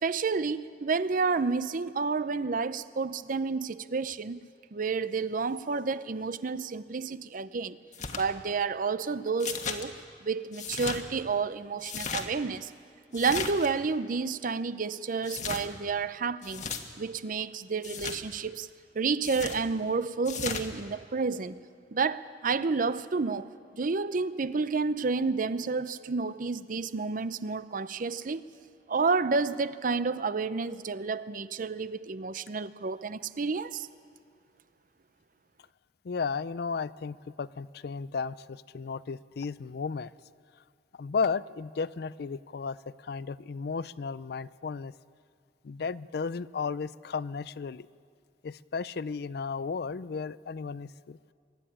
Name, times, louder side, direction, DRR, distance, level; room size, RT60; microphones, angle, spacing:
voice 1, 0.0-4.4 4.7-7.8 8.1-10.0 10.2-12.7 13.1-16.7 17.0-18.7 18.9-21.6 21.9-23.5 23.8-28.4 28.9-33.9, right 4 dB, 50° right, 0.6 m, -30 dB
sound 1, 7.9-8.2 9.4-9.8 10.5-11.0 11.8-12.3 13.1-13.7 15.2-15.6 16.4-16.8 17.8-18.2 19.2-19.6 20.2-20.6, left 6 dB, 45° left, 1.4 m, -35 dB
voice 2, 36.0-40.1 41.0-44.9 45.6-47.9 48.4-51.2, left 5 dB, 60° left, 0.4 m, -34 dB
23.5 x 12.5 x 10.0 m
head